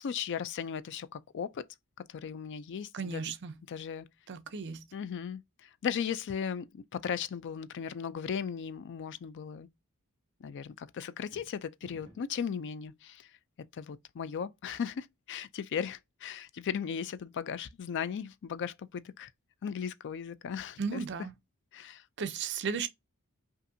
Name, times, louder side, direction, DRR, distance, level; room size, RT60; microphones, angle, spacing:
voice 1, 0.0-1.7 2.0-3.3 3.7-4.1 4.9-9.7 10.4-13.3 13.7-19.3 19.6-21.0 21.7-22.0, left 7 dB, 55° left, 0.4 m, -37 dB
voice 2, 2.9-3.5 4.3-4.8 20.8-21.3 22.2-22.9, right 6 dB, 50° right, 0.5 m, -35 dB
sound 1, 11.1-12.4, right 1 dB, 25° right, 1.7 m, -56 dB
5.4 x 2.5 x 2.6 m
head